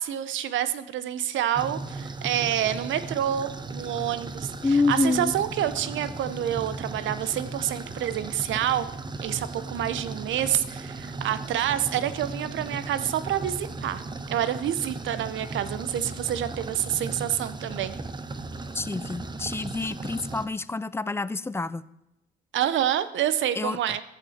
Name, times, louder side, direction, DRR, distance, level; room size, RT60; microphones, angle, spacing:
voice 1, 0.0-8.9 9.2-14.0 14.3-17.9 22.5-24.0, right 10 dB, 75° right, 13 dB, 0.7 m, -28 dB
sound 1, 1.5-20.5, right 3 dB, 20° right, 0.8 m, -36 dB
voice 2, 4.6-5.3 18.7-21.9 23.6-23.8, left 3 dB, 10° left, 17 dB, 0.3 m, -27 dB
14.5 x 6.1 x 4.2 m, 0.89 s
cardioid pair, 90°, 20 cm